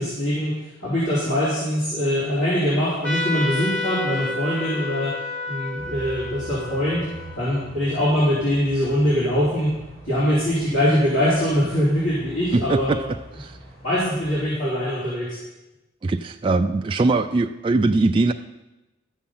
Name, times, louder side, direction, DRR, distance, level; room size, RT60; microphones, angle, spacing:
voice 1, 0.0-5.2 5.5-7.0 7.4-9.7 10.0-13.0 13.8-15.4, equal, 80° left, -9 dB, 3.4 m, -22 dB
Trumpet, 3.0-8.1, left 2 dB, 5° left, 1.3 m, -31 dB
sound 1, 5.8-14.4, right 1 dB, 45° left, 4.3 m, -43 dB
voice 2, 12.5-13.0 13.4-13.6 16.0-18.3, right 3 dB, 25° right, 5 dB, 0.3 m, -21 dB
12.5 x 7.2 x 5.6 m, 1.0 s
head